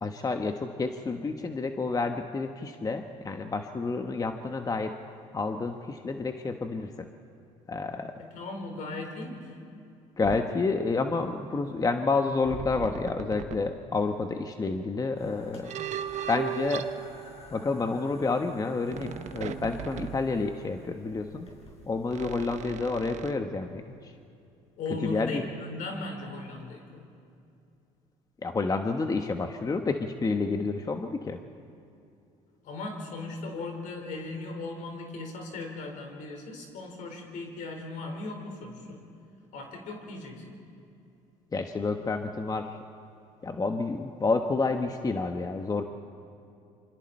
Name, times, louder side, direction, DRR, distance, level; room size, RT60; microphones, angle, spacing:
voice 1, 0.0-5.0 5.3-7.1 7.7-8.2 10.2-15.7 16.3-16.9 17.5-21.5 21.9-24.1 25.0-25.4 28.4-31.4 41.5-42.8 43.4-45.8, left 3 dB, 25° left, 5 dB, 1.2 m, -29 dB
voice 2, 8.2-9.6 24.8-27.0 32.6-39.0 39.5-40.6, left 3 dB, 70° left, 2 dB, 4.8 m, -37 dB
sound 1, 10.2-10.5 12.4-13.8 15.6-17.8 18.9-20.9 22.1-23.4, right 10 dB, 60° right, 1.1 m, -38 dB
sound 2, 15.1-22.6, left 1 dB, 45° left, 6.7 m, -52 dB
26.5 x 26.0 x 4.5 m, 2.6 s
supercardioid pair, 85°, 14 cm